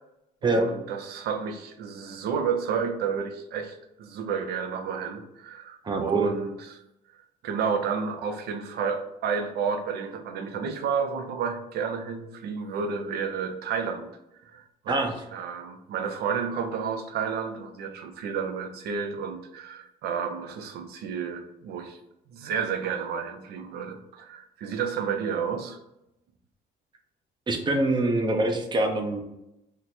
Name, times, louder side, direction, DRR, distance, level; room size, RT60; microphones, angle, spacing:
voice 1, 0.4-6.8 7.4-14.1 14.4-22.0 22.3-25.8, right 6 dB, 70° right, 6 dB, 0.6 m, -31 dB
voice 2, 5.8-6.3 14.9-15.1 27.5-29.2, right 2 dB, 25° right, 4 dB, 0.6 m, -25 dB
3.0 x 2.1 x 4.0 m, 0.86 s
cardioid pair, 110°, 17 cm